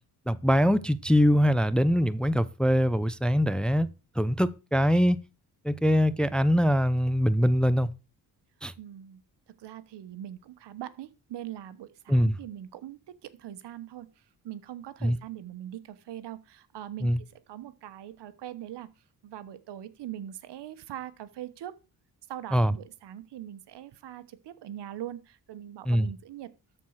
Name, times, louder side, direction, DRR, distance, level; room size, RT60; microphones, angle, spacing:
voice 1, 0.3-5.2 5.6-7.9 8.6-8.7 12.1-12.4 15.0-15.2 17.0-17.2 22.5-22.7 25.9-26.1, equal, ahead, 0.5 m, -23 dB
voice 2, 8.8-21.8 22.3-26.5, right 12 dB, 85° right, 1.1 m, -42 dB
13.0 x 4.5 x 6.3 m
cardioid pair, 95°, 40 cm